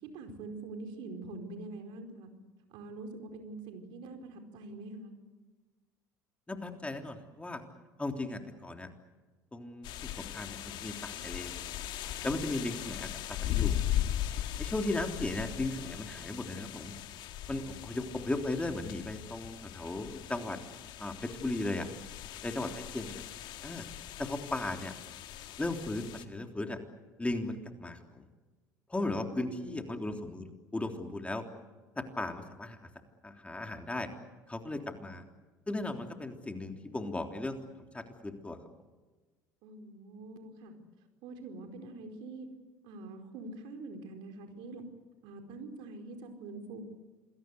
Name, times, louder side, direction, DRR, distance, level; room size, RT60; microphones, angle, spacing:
voice 1, 0.0-2.3 2.7-5.1 29.2-30.0 39.6-40.7 41.2-42.5 42.8-44.8 45.2-46.8, right 3 dB, 65° right, 5 dB, 4.7 m, -45 dB
voice 2, 6.5-7.6 8.0-8.9 9.5-11.6 12.2-13.8 14.6-16.9 17.5-20.6 21.0-21.9 22.4-23.2 23.6-23.8 24.2-24.9 25.6-26.8 27.2-28.2 28.9-30.5 30.7-31.4 32.0-32.8 33.2-34.1 34.5-35.2 35.7-37.6 37.9-38.6, left 2 dB, 15° left, 5 dB, 3.4 m, -36 dB
sound 1, 9.8-26.2, left 12 dB, 60° left, 1.9 m, -38 dB
28.0 x 22.0 x 8.2 m, 1.3 s
hypercardioid pair, 70°, 9 cm